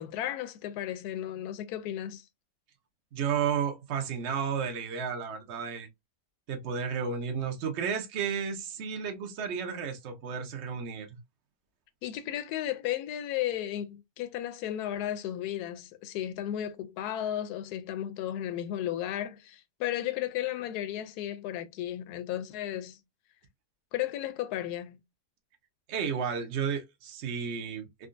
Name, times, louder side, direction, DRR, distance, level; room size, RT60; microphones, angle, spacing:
voice 1, 0.0-2.2 12.0-23.0 23.9-25.0, left 12 dB, 75° left, 1.1 m, -34 dB
voice 2, 3.1-5.9 6.5-11.2 25.9-28.1, right 7 dB, 55° right, 0.8 m, -32 dB
3.7 x 2.3 x 2.5 m
omnidirectional pair, 1.8 m